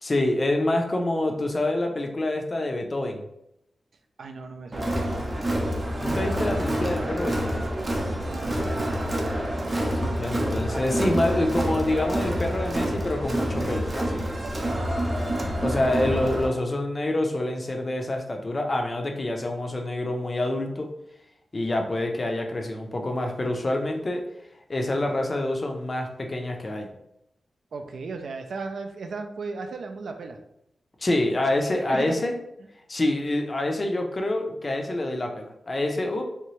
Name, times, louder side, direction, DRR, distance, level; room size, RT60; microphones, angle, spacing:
voice 1, 0.0-3.3 6.0-7.7 9.7-14.2 15.6-20.9 21.5-24.2 24.7-26.9 31.0-32.3 32.9-36.2, left 1 dB, 30° left, 3 dB, 0.4 m, -27 dB
voice 2, 4.2-5.0 8.1-9.0 14.4-14.8 27.7-30.4 31.9-32.3, right 4 dB, 75° right, 5 dB, 0.4 m, -36 dB
Crowd, 4.7-16.5, equal, 25° right, 0.5 m, -27 dB
3.3 x 2.8 x 3.0 m, 0.81 s
wide cardioid pair, 165°, 0 cm